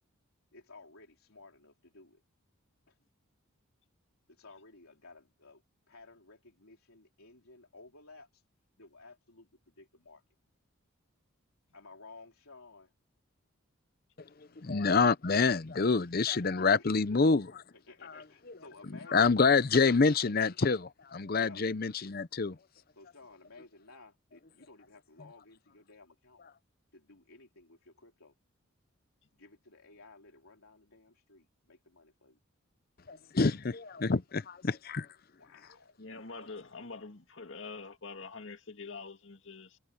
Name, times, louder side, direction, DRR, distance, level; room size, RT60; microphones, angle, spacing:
voice 1, 0.5-2.2 2.9-3.0 4.3-5.6 5.9-8.4 8.8-10.2 11.7-12.9 14.4-14.6 16.3-16.9 17.9-20.0 21.4-21.7 23.0-26.4 26.9-28.3 29.3-32.4 35.4-36.0, left 3 dB, 85° left, 3.4 m, -55 dB
voice 2, 14.6-17.6 19.1-22.6 33.1-35.1, left 4 dB, 45° left, 0.6 m, -27 dB
voice 3, 36.0-39.8, left 4 dB, 60° left, 2.1 m, -45 dB
head